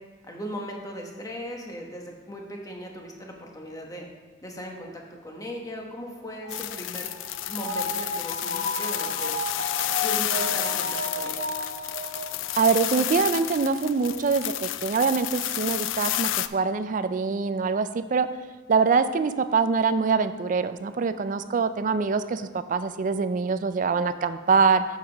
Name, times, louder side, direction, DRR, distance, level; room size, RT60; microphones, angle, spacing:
voice 1, 0.2-4.1 4.4-7.1 7.5-9.3 10.0-11.4, equal, 20° left, 0 dB, 1.1 m, -38 dB
sound 1, 6.4-13.1 13.4-13.5, left 1 dB, 40° left, 1.3 m, -33 dB
sound 2, 6.5-16.5, left 14 dB, 80° left, 0.3 m, -30 dB
voice 2, 12.6-18.3 18.7-24.9, right 5 dB, 45° right, 12 dB, 0.4 m, -24 dB
8.4 x 7.2 x 3.4 m, 1.4 s
head